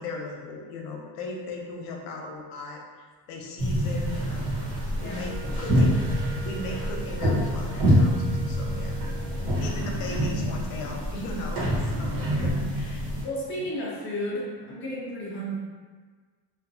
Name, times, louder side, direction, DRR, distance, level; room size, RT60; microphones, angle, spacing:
voice 1, 0.0-4.5 5.0-5.9 6.4-9.0 9.6-13.0 13.4-13.7, left 2 dB, 80° left, 0 dB, 0.7 m, -37 dB
sound 1, 3.6-13.2, equal, 80° right, 1.3 m, -26 dB
voice 2, 4.9-5.4 9.2-9.6 10.5-10.6 12.3-12.6 13.2-15.6, equal, 25° left, -6 dB, 0.5 m, -34 dB
Wind instrument woodwind instrument, 5.1-9.7, right 3 dB, 5° right, 0.7 m, -44 dB
2.7 x 2.4 x 2.6 m, 1.5 s
cardioid pair, 165°, 50 cm